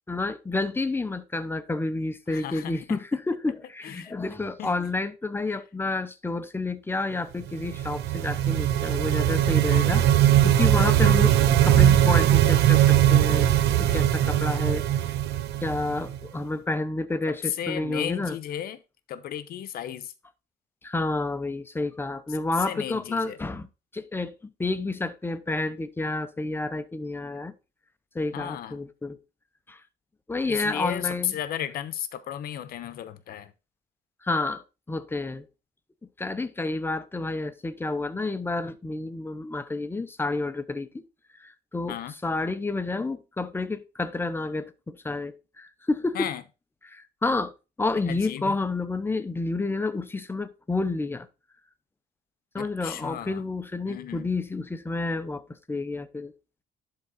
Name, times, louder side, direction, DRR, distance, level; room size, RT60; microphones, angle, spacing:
voice 1, 0.1-10.0 10.4-11.4 11.6-13.5 13.8-14.9 15.6-18.4 20.8-23.7 23.9-24.3 24.6-27.5 28.1-29.2 29.7-29.8 30.3-31.3 34.2-35.5 36.2-41.0 41.4-42.0 42.2-46.3 46.8-47.5 47.8-51.3 52.5-56.3, left 3 dB, 15° left, 0.8 m, -30 dB
voice 2, 2.3-3.0 3.8-4.1 4.6-4.7 5.5-5.6 17.4-18.8 19.1-20.1 22.7-23.4 28.3-28.8 30.5-33.5 41.9-42.1 46.1-46.4 48.1-48.6 52.6-53.4 53.9-54.3, left 10 dB, 65° left, 1.0 m, -34 dB
sound 1, 7.5-16.3, right 11 dB, 75° right, 0.7 m, -20 dB
11.5 x 3.8 x 4.1 m
cardioid pair, 110°, 17 cm